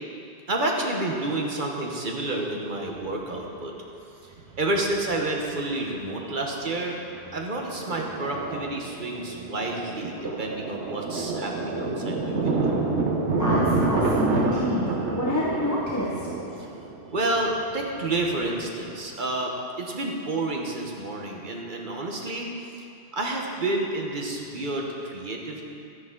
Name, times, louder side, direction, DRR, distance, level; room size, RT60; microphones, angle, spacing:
voice 1, 0.5-3.7 4.2-7.0 7.3-12.7 16.6-16.7 17.1-22.5 22.8-22.9 23.1-25.6, right 2 dB, 45° right, 0 dB, 1.1 m, -29 dB
Thunder, 3.0-3.1 4.4-5.2 5.4-5.5 6.0-6.3 6.6-19.0, right 3 dB, 80° right, 1.3 m, -28 dB
voice 2, 13.4-16.3, left 1 dB, 15° left, -6 dB, 0.9 m, -27 dB
11.5 x 9.6 x 3.8 m, 2.6 s
omnidirectional pair, 1.2 m